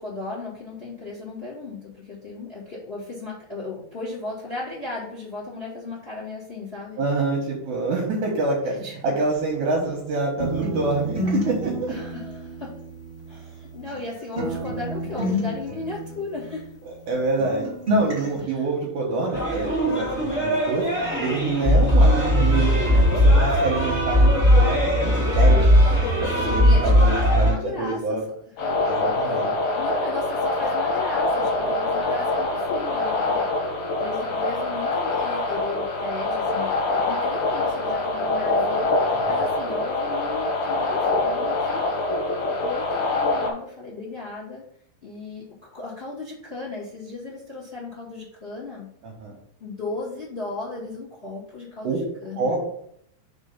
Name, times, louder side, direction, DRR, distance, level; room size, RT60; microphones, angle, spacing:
voice 1, 0.0-7.0 8.6-9.0 11.2-11.3 11.9-12.7 13.3-16.7 18.4-18.7 26.4-28.2 28.6-29.4 29.7-33.5 34.0-41.8 42.6-44.6 45.0-48.9 49.6-52.5, left 3 dB, 80° left, -5 dB, 0.5 m, -36 dB
voice 2, 7.0-8.8 9.0-11.9 17.1-20.9 21.2-25.8 26.2-28.2 28.8-29.5 39.1-39.5 49.0-49.3 51.8-52.0 52.4-52.7, right 3 dB, 75° right, -2 dB, 1.8 m, -26 dB
sound 1, 10.4-14.1 14.4-17.1 17.4-18.4, equal, 35° right, 1.0 m, -30 dB
sound 2, 19.3-27.5, equal, 40° left, 1.1 m, -18 dB
sound 3, 28.6-43.5, left 2 dB, 55° left, 2.8 m, -24 dB
6.1 x 3.7 x 5.6 m, 0.69 s
omnidirectional pair, 5.1 m